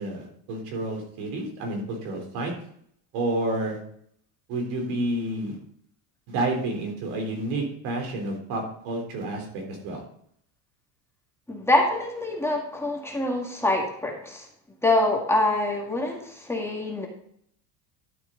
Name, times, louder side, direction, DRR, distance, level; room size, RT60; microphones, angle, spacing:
voice 1, 0.0-2.5 3.1-3.8 4.5-5.6 6.3-10.0, right 2 dB, 75° right, 1 dB, 3.8 m, -30 dB
voice 2, 11.5-14.5 14.8-17.1, left 2 dB, 5° left, -1 dB, 2.1 m, -25 dB
12.0 x 7.2 x 3.9 m, 0.66 s
cardioid pair, 135°, 41 cm